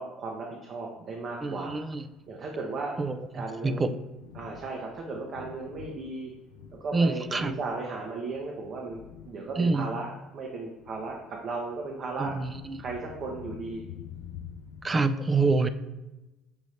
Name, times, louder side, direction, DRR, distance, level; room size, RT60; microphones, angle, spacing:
voice 1, 0.0-1.9 2.3-3.0 3.3-3.9 4.3-6.3 6.8-12.3 12.8-13.8, right 3 dB, 50° right, -1 dB, 0.7 m, -36 dB
Thunder, 1.3-14.9, left 8 dB, 85° left, 0.3 m, -49 dB
voice 2, 1.4-2.0 3.0-3.9 6.9-7.5 9.6-9.9 12.2-12.8 14.8-15.7, right 3 dB, 25° right, 10 dB, 0.4 m, -27 dB
6.3 x 2.7 x 3.2 m, 1.0 s
supercardioid pair, 85°, 0 cm